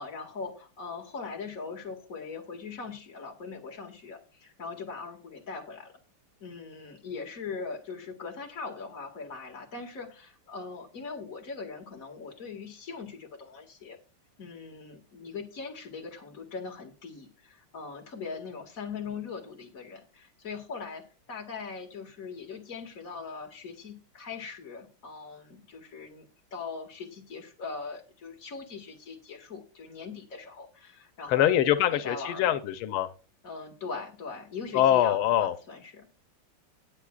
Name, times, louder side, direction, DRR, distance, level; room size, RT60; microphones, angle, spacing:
voice 1, 0.0-5.9 6.4-14.0 14.4-31.5 31.8-32.6 33.4-36.1, left 4 dB, 40° left, 2 dB, 2.3 m, -40 dB
voice 2, 31.3-33.1 34.7-35.5, left 11 dB, 90° left, 10 dB, 1.6 m, -24 dB
19.5 x 6.8 x 2.4 m, 0.33 s
omnidirectional pair, 2.3 m